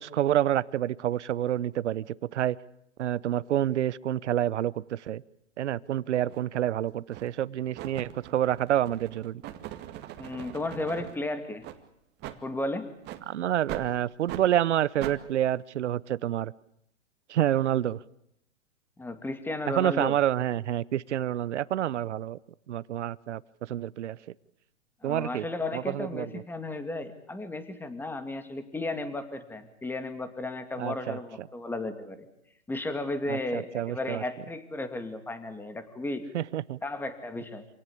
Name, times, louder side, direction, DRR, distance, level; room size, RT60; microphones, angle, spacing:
voice 1, 0.0-2.1 2.3-2.6 3.0-5.2 5.6-9.4 13.3-16.5 17.3-18.0 19.7-22.4 22.7-23.4 23.7-24.2 25.0-25.5 25.7-26.4 30.8-31.2 33.3-34.2 36.3-36.8, right 12 dB, 70° right, 20 dB, 1.0 m, -28 dB
sound 1, 6.3-6.4 7.1-7.4 7.7-11.1 11.6-11.8 12.2-12.4 13.0-13.2 13.7-13.9 14.3-14.4 15.0-15.2, right 12 dB, 30° right, 2.1 m, -40 dB
voice 2, 10.2-11.6 12.4-12.9 19.0-20.2 25.0-32.3 32.7-36.2 36.8-37.7, left 2 dB, 5° left, 10 dB, 2.3 m, -34 dB
27.0 x 18.0 x 8.6 m, 0.79 s
hypercardioid pair, 135°, 36 cm